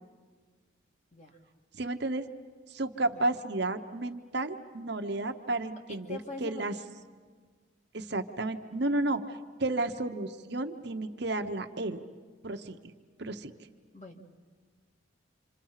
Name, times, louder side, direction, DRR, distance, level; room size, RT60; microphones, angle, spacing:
voice 1, 1.7-2.3 2.7-6.7 7.9-12.0 12.4-12.8 13.2-13.5, right 2 dB, 55° right, 6 dB, 1.0 m, -32 dB
voice 2, 3.0-3.4 5.9-6.8 13.9-14.2, left 2 dB, 35° left, 3 dB, 2.0 m, -44 dB
27.0 x 27.0 x 5.8 m, 1.5 s
head